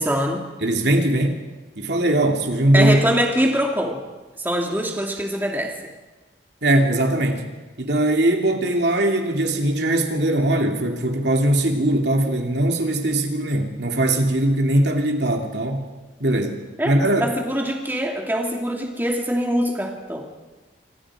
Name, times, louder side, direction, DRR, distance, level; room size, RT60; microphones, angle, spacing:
voice 1, 0.0-0.4 2.7-4.0 4.4-5.7 16.8-20.2, equal, 10° right, 1 dB, 2.6 m, -23 dB
voice 2, 0.6-1.4 1.8-3.0 6.6-7.4 7.8-15.9 16.2-16.6 16.8-17.3, right 1 dB, 70° right, 3 dB, 2.8 m, -20 dB
26.5 x 26.0 x 5.0 m, 1.2 s
head